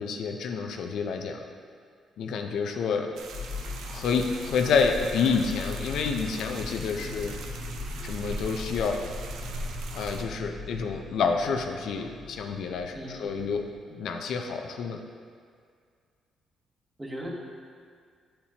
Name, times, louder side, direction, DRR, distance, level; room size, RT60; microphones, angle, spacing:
voice 1, 0.0-1.4 2.2-3.1 3.9-7.4 8.0-9.0 9.9-13.6 13.9-15.0, left 5 dB, 75° left, 4 dB, 0.4 m, -28 dB
sound 1, 3.2-10.2, right 1 dB, 80° right, 0.5 m, -39 dB
sound 2, 3.3-13.8, left 3 dB, 20° left, 1.1 m, -40 dB
voice 2, 12.9-13.3 17.0-17.3, equal, 15° right, -2 dB, 1.1 m, -38 dB
8.3 x 4.3 x 2.8 m, 2.1 s
cardioid pair, 90°, 0 cm